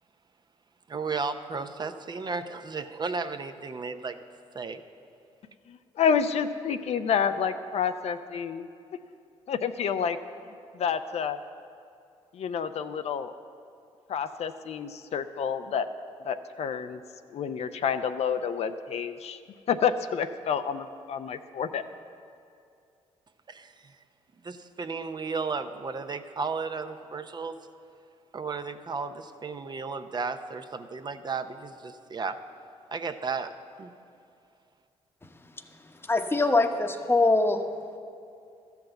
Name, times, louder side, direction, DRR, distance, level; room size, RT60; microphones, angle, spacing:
voice 1, 0.9-4.2 4.5-4.8 23.5-23.9 24.4-27.6 28.3-32.4 32.9-33.5 33.8-33.9, right 4 dB, 35° right, 9 dB, 0.6 m, -34 dB
voice 2, 5.7-8.7 9.5-10.2 10.7-11.4 12.3-13.3 14.1-15.9 16.3-17.0 17.3-19.4 19.7-21.9, left 7 dB, 60° left, 9 dB, 0.5 m, -29 dB
voice 3, 36.1-37.6, left 2 dB, 20° left, 6 dB, 0.9 m, -23 dB
13.0 x 5.9 x 7.8 m, 2.4 s
supercardioid pair, 65°, 12 cm